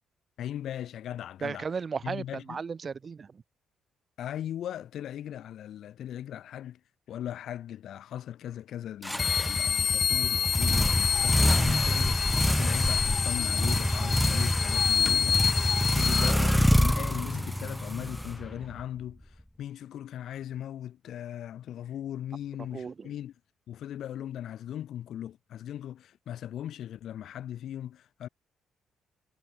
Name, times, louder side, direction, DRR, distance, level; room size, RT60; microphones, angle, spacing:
voice 1, 0.4-1.7 2.0-2.6 4.2-6.8 7.1-23.3 23.7-28.3, left 11 dB, 70° left, 4.6 m, -38 dB
voice 2, 1.4-3.4 16.1-16.4 22.7-23.1, right 5 dB, 40° right, 5.0 m, -35 dB
sound 1, 9.0-18.8, equal, 5° left, 2.7 m, -26 dB
sound 2, 9.2-16.3, left 7 dB, 55° left, 1.6 m, -28 dB
cardioid pair, 90°, 0 cm